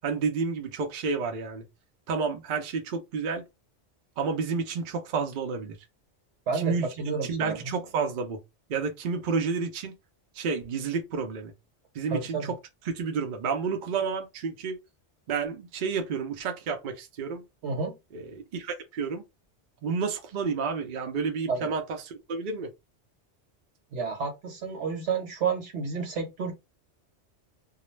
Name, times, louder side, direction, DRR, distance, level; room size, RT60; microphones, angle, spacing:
voice 1, 0.0-1.6 2.1-3.4 4.2-5.8 6.5-6.9 7.3-8.4 8.7-9.9 10.4-11.5 11.9-12.5 12.9-14.8 15.3-17.4 18.1-19.2 19.8-21.8 22.3-22.7, right 5 dB, 55° right, 0.6 m, -30 dB
voice 2, 6.5-7.7 12.1-12.5 17.6-18.0 21.5-21.7 23.9-26.5, right 5 dB, 75° right, 1.2 m, -30 dB
2.3 x 2.0 x 3.1 m
omnidirectional pair, 1.2 m